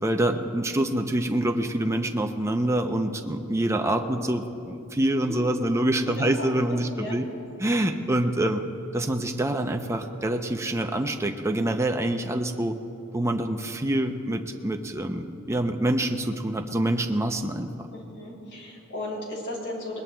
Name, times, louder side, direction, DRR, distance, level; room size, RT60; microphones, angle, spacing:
voice 1, 0.0-7.2 7.6-8.6 8.9-12.8 13.1-17.7, right 1 dB, 15° right, 4 dB, 0.5 m, -26 dB
voice 2, 6.0-6.5 6.9-7.1 17.9-20.0, left 1 dB, 65° left, -2 dB, 3.6 m, -35 dB
21.0 x 20.0 x 2.3 m, 2.7 s
head